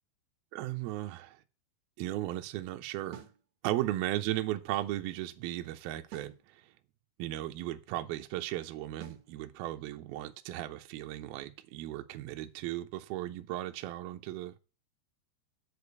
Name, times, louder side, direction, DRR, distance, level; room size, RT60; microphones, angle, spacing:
voice 1, 0.5-1.4 2.0-3.2 3.6-6.6 7.2-14.5, right 15 dB, 80° right, 2.3 m, -36 dB
sound 1, 3.1-3.4 6.1-6.4 9.0-9.3, right 8 dB, 50° right, 2.2 m, -48 dB
7.6 x 6.7 x 8.2 m
omnidirectional pair, 5.3 m